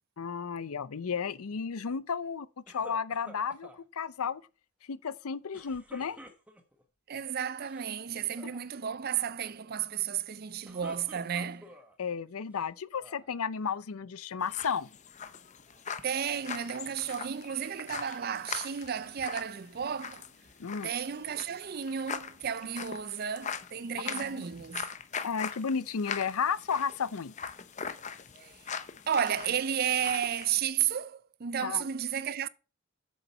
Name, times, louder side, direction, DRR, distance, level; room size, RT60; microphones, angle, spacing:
voice 1, 0.2-4.4 4.9-6.2 12.0-14.9 20.6-20.9 24.1-24.4 25.2-27.3 31.6-31.8, left 6 dB, 80° left, 0.5 m, -33 dB
sound 1, 2.7-3.8 5.5-6.8 7.5-7.9 8.2-8.6 10.4-11.9 12.5-13.3, equal, 5° right, 1.1 m, -51 dB
voice 2, 7.1-11.7 16.0-20.3 20.8-24.9 28.4-28.7 29.1-32.5, right 8 dB, 45° right, 0.4 m, -33 dB
sound 2, 14.4-30.6, left 6 dB, 30° left, 0.6 m, -42 dB
8.1 x 7.2 x 5.4 m
head